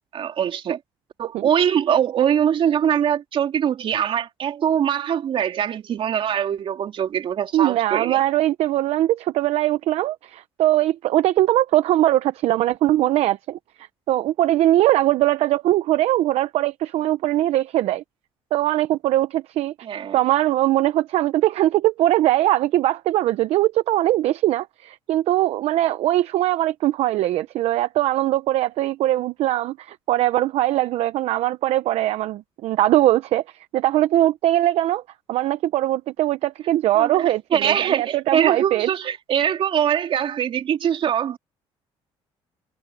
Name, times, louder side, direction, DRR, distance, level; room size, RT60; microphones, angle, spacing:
voice 1, 0.1-0.8 1.2-8.2 19.8-20.2 36.9-41.4, right 9 dB, 55° right, 3.3 m, -22 dB
voice 2, 7.5-18.0 18.5-19.7 20.1-33.4 33.7-35.0 35.3-38.9, right 14 dB, 70° right, 0.8 m, -21 dB
cardioid pair, 95°, 11 cm